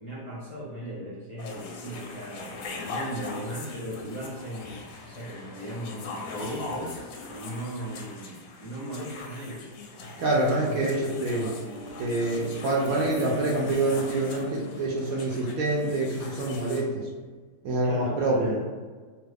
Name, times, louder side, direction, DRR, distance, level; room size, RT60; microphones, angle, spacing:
voice 1, 0.0-9.6 10.0-10.8 17.8-18.6, right 1 dB, 40° left, -7 dB, 0.4 m, -38 dB
sound 1, 1.4-16.8, left 3 dB, 70° left, 0.9 m, -41 dB
voice 2, 10.2-11.5 12.0-17.1 17.6-18.6, right 2 dB, 70° right, -3 dB, 0.9 m, -26 dB
Wind instrument woodwind instrument, 10.9-15.5, right 2 dB, 25° right, 0.9 m, -43 dB
3.0 x 2.4 x 3.3 m, 1.4 s
omnidirectional pair, 1.7 m